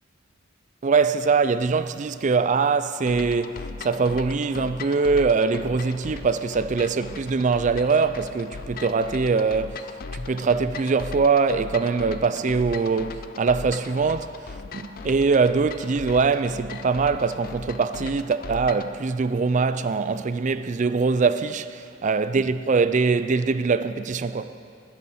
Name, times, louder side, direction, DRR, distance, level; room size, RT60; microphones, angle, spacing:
voice 1, 0.8-14.4 14.7-24.6, right 4 dB, 35° right, 0.4 m, -23 dB
sound 1, 3.1-18.9, left 4 dB, 45° left, 0.5 m, -38 dB
18.5 x 10.0 x 4.3 m
head